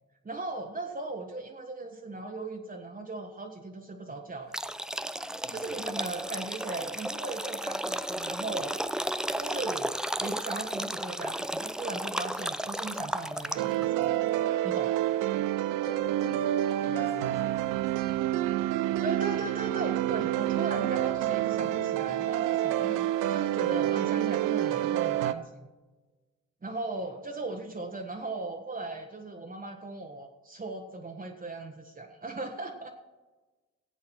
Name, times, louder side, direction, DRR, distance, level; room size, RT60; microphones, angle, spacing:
voice 1, 0.2-4.5 5.5-8.7 9.4-14.2 14.6-15.1 19.0-25.7 26.6-32.9, right 3 dB, 25° right, 2 dB, 1.3 m, -38 dB
sound 1, 4.5-13.8, right 1 dB, ahead, 0.4 m, -33 dB
voice 2, 5.4-5.7 15.8-16.5 16.8-18.1 23.7-24.0, left 2 dB, 25° left, -3 dB, 2.0 m, -45 dB
sound 2, 13.6-25.3, right 13 dB, 60° right, 0.6 m, -28 dB
15.5 x 8.5 x 4.5 m, 1.2 s
figure-of-eight pair, 45°, 36 cm